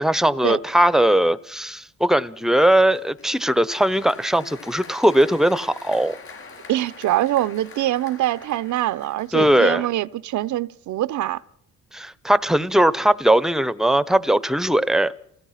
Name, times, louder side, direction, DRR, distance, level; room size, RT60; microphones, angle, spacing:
voice 1, 0.0-6.1 9.3-9.8 11.9-15.1, right 1 dB, ahead, 0.7 m, -19 dB
Applause, 2.6-9.7, left 4 dB, 45° left, 5.3 m, -44 dB
voice 2, 6.7-11.4, right 14 dB, 75° right, 0.7 m, -24 dB
28.0 x 17.0 x 5.8 m
cardioid pair, 90°, 30 cm